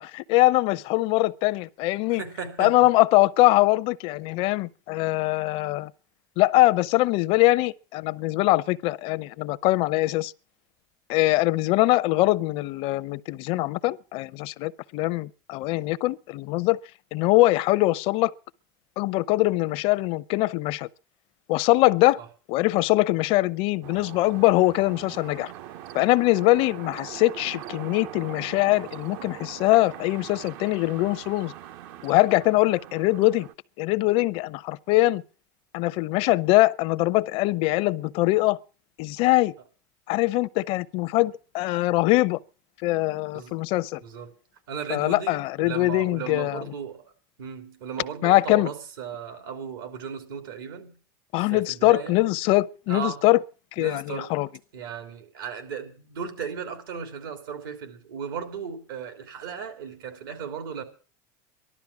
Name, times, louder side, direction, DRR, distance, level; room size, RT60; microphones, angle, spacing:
voice 1, 0.0-2.2 2.6-5.9 6.4-10.3 11.1-16.8 17.1-18.3 19.0-20.9 21.5-22.2 22.5-25.5 25.9-31.5 32.0-33.5 33.8-35.2 35.7-38.6 39.0-39.5 40.1-42.4 42.8-44.0 44.9-46.7 48.2-48.7 51.3-53.4 53.8-54.5, left 18 dB, 55° left, 0.6 m, -22 dB
voice 2, 2.2-2.8 43.3-43.6 44.0-44.3 44.7-47.1 47.4-51.0 51.5-52.2 52.9-53.2 53.8-54.3 54.7-60.8, right 7 dB, 85° right, 3.3 m, -36 dB
sound 1, 23.8-33.5, right 12 dB, 65° right, 0.8 m, -42 dB
14.5 x 12.0 x 6.0 m
supercardioid pair, 110°, 11 cm